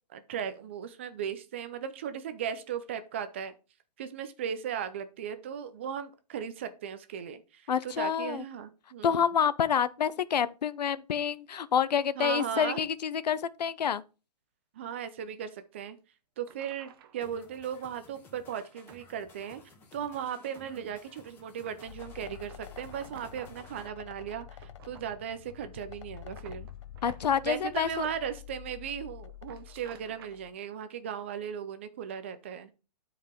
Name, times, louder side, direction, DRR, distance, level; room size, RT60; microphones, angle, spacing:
voice 1, 0.1-3.5 4.0-9.3 12.2-12.9 14.7-16.0 16.4-19.6 19.9-26.7 27.4-32.7, right 8 dB, 20° right, 0.4 m, -37 dB
voice 2, 7.7-8.4 9.0-14.0 27.0-28.1, left 8 dB, 85° left, 0.7 m, -28 dB
sound 1, 15.8-15.9 16.4-17.2 18.5-19.0 19.4-19.6 20.1-20.9 21.6-22.0 22.5-24.1 24.5-25.8 26.1-28.1 29.3-30.4, right 8 dB, 35° right, 0.8 m, -54 dB
sound 2, 17.2-23.9, left 3 dB, 10° left, 0.9 m, -56 dB
sound 3, 21.9-30.5, left 11 dB, 45° left, 0.7 m, -48 dB
11.0 x 4.7 x 3.6 m
hypercardioid pair, 165°, 21 cm